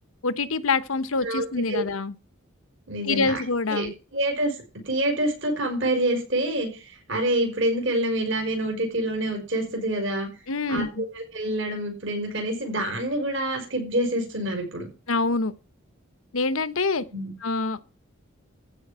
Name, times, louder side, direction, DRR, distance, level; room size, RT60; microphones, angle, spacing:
voice 1, 0.2-2.1 3.0-3.9 10.5-11.0 15.1-15.5 16.3-17.0 17.4-17.8, left 3 dB, 80° left, 1.0 m, -25 dB
voice 2, 1.2-1.8 2.9-3.4 3.7-4.6 4.9-6.8 7.1-10.3 10.7-14.9 17.1-17.3, right 1 dB, 60° right, 5.7 m, -27 dB
15.0 x 5.2 x 6.9 m
head